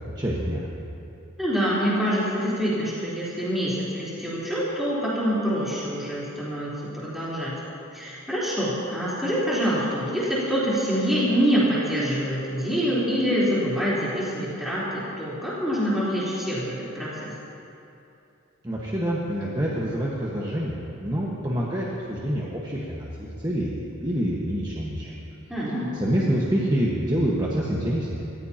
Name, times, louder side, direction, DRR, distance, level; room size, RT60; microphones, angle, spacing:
voice 1, 0.2-0.7 18.6-25.1 25.9-28.2, equal, 20° right, -5 dB, 1.4 m, -26 dB
voice 2, 1.4-7.5 7.9-17.3 25.5-25.9, equal, ahead, -10 dB, 3.8 m, -25 dB
27.0 x 14.5 x 2.9 m, 2.8 s
head